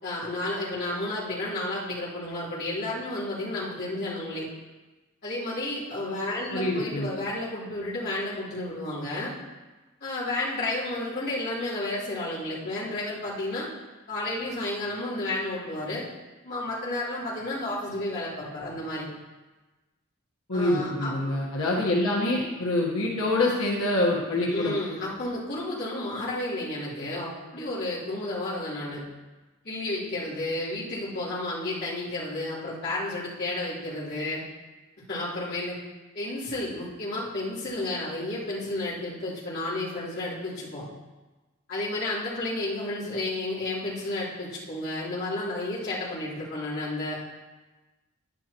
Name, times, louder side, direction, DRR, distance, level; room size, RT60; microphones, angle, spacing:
voice 1, 0.0-4.5 5.2-9.3 10.0-13.7 14.1-16.1 16.4-19.1 20.5-21.4 24.5-29.0 29.6-34.4 35.1-35.8 36.1-40.9 41.7-47.2, left 2 dB, 50° left, -10 dB, 3.5 m, -32 dB
voice 2, 6.5-7.1 20.5-24.8, left 1 dB, 90° left, -4 dB, 1.3 m, -25 dB
10.5 x 10.0 x 3.0 m, 1.2 s
head